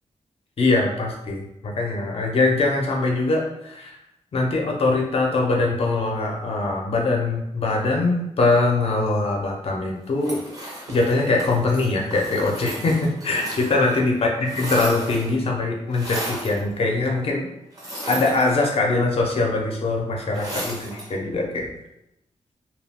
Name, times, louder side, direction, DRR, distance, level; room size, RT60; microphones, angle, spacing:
voice 1, 0.6-4.0 4.3-10.4 10.9-14.3 14.6-17.5 18.1-21.7, left 3 dB, 55° left, 0 dB, 0.6 m, -22 dB
sound 1, 10.2-14.0 14.2-15.4 15.9-16.6 17.7-18.9 20.3-21.1, right 1 dB, 30° right, 0.8 m, -34 dB
2.3 x 2.2 x 3.5 m, 0.86 s
wide cardioid pair, 125°, 12 cm